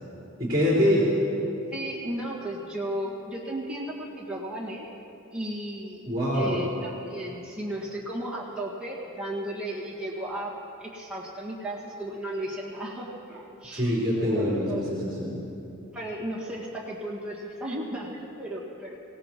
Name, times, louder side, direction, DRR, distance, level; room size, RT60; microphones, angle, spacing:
voice 1, 0.4-1.1 6.1-6.6 13.7-15.4, equal, 20° right, -9 dB, 4.0 m, -24 dB
voice 2, 1.7-4.9 5.3-6.0 6.3-14.0 14.3-14.8 15.9-19.0, right 1 dB, 5° right, -6 dB, 1.8 m, -35 dB
24.5 x 17.5 x 3.1 m, 2.9 s
head